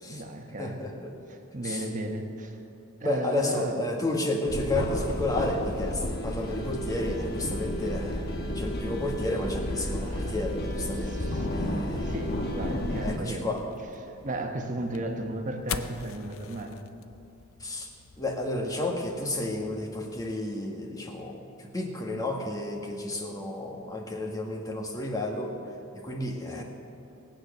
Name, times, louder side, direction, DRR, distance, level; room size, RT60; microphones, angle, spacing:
voice 1, 0.0-0.8 1.3-2.6 3.0-3.8 10.0-10.3 10.9-11.5 12.0-13.5 14.0-16.8 26.6-26.7, right 1 dB, 35° right, 3 dB, 1.3 m, -35 dB
voice 2, 0.6-1.1 1.6-1.9 3.0-8.2 8.5-12.1 13.0-13.6 17.6-17.9 18.2-25.6 25.9-26.6, left 1 dB, 15° left, 0 dB, 1.6 m, -32 dB
sound 1, 4.5-13.2, left 1 dB, 50° left, 1.3 m, -32 dB
sound 2, 13.6-20.3, left 7 dB, 75° left, 0.6 m, -43 dB
19.0 x 8.9 x 6.7 m, 2.6 s
head